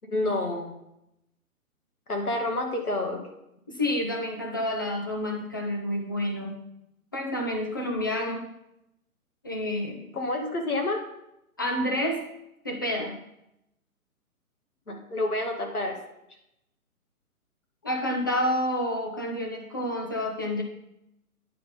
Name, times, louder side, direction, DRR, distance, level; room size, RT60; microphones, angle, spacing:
voice 1, 0.1-0.7 2.1-3.2 10.1-11.0 14.9-16.0, left 2 dB, 85° left, 2 dB, 2.2 m, -28 dB
voice 2, 3.7-6.5 7.1-8.5 9.4-10.0 11.6-12.3 12.6-13.2 17.8-20.6, left 1 dB, 15° left, 1 dB, 0.4 m, -29 dB
9.3 x 3.7 x 5.4 m, 0.81 s
figure-of-eight pair, 135°, 44 cm